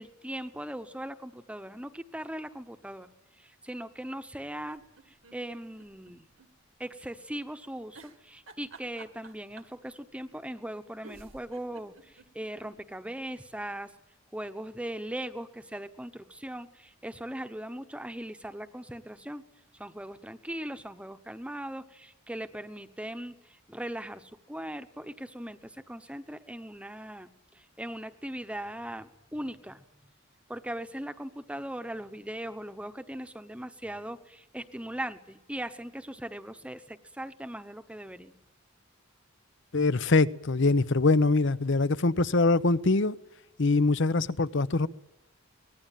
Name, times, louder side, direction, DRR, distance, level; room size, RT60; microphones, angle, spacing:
voice 1, 0.0-3.1 3.4-4.8 5.1-6.2 6.8-13.9 14.3-19.4 19.7-27.3 27.5-29.8 30.5-38.3, right 1 dB, 5° right, 1.0 m, -39 dB
sound 1, 4.6-6.5 6.8-6.9 7.9-9.8 10.7-10.8 11.0-12.8 13.2-13.3 13.5-13.6, right 3 dB, 85° right, 2.1 m, -52 dB
voice 2, 39.7-43.1 43.6-44.9, left 3 dB, 65° left, 0.8 m, -23 dB
24.0 x 19.5 x 9.2 m
head